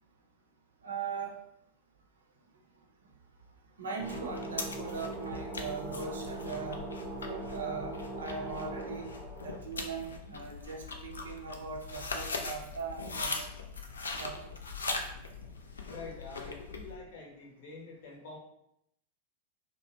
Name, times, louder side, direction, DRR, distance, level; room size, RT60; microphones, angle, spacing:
voice 1, 0.8-1.4 3.8-6.8 7.2-9.1 9.4-13.5 14.1-14.5, right 5 dB, 70° right, 1 dB, 0.5 m, -40 dB
sound 1, 4.0-16.9, left 4 dB, 70° left, 0.3 m, -41 dB
sound 2, 4.0-9.6, right 2 dB, 5° right, 0.7 m, -41 dB
voice 2, 15.9-18.4, left 3 dB, 55° left, -1 dB, 0.7 m, -46 dB
2.7 x 2.1 x 2.8 m, 0.78 s
figure-of-eight pair, 90°, 0 cm